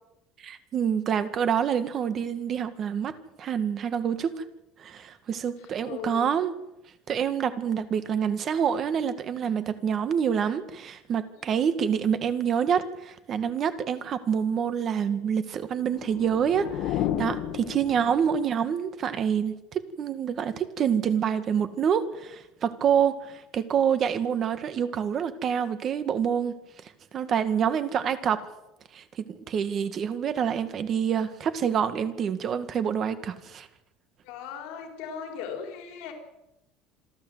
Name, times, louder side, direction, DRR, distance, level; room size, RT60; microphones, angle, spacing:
voice 1, 0.4-4.4 4.8-6.5 7.1-26.5 27.1-28.4 28.9-33.7, right 8 dB, 35° right, 11 dB, 1.8 m, -27 dB
voice 2, 5.6-6.4 11.3-11.5 34.2-36.1, left 7 dB, 75° left, 4 dB, 4.5 m, -38 dB
sound 1, 15.8-18.5, left 11 dB, 60° left, 1.7 m, -32 dB
27.0 x 12.0 x 8.1 m, 0.90 s
cardioid pair, 150°, 0 cm